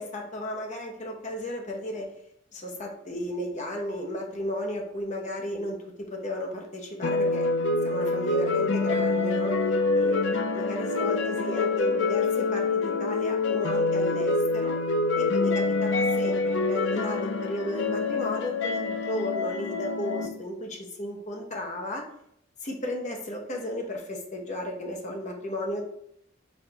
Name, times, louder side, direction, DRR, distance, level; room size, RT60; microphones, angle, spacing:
voice 1, 0.0-2.1 2.5-7.5 7.8-9.6 9.9-14.8 15.2-22.0 22.6-25.8, left 1 dB, 40° left, 1 dB, 0.9 m, -34 dB
sound 1, 7.0-20.3, left 3 dB, 70° left, 0.5 m, -26 dB
4.3 x 2.6 x 4.4 m, 0.72 s
head